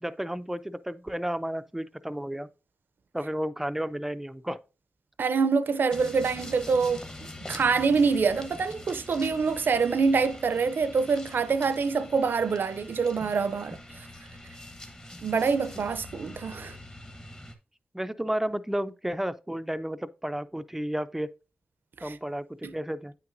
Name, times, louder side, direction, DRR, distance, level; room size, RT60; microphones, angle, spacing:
voice 1, 0.0-2.5 3.1-4.6 17.9-21.3 22.0-23.1, equal, 10° right, 0.4 m, -32 dB
voice 2, 5.2-7.0 7.5-14.1 15.2-16.8 22.0-22.1 22.6-22.7, right 5 dB, 70° right, 0.5 m, -25 dB
sound 1, 5.9-17.6, left 1 dB, 25° left, 1.0 m, -44 dB
8.8 x 5.8 x 2.6 m
wide cardioid pair, 115°, 4 cm